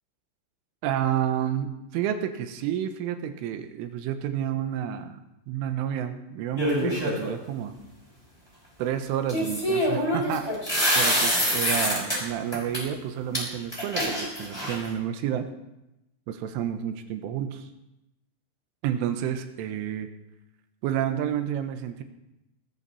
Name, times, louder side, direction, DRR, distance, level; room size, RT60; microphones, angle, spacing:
voice 1, 0.8-7.8 8.8-10.5 11.0-15.5 16.3-17.7 18.8-20.1 20.8-22.0, right 10 dB, 85° right, 8 dB, 3.6 m, -30 dB
sound 1, 6.6-7.3 9.3-12.2 12.5-12.8 13.3-13.4 13.7-14.9, equal, 5° left, 5.6 m, -25 dB
20.5 x 13.5 x 4.2 m, 0.93 s
omnidirectional pair, 5.6 m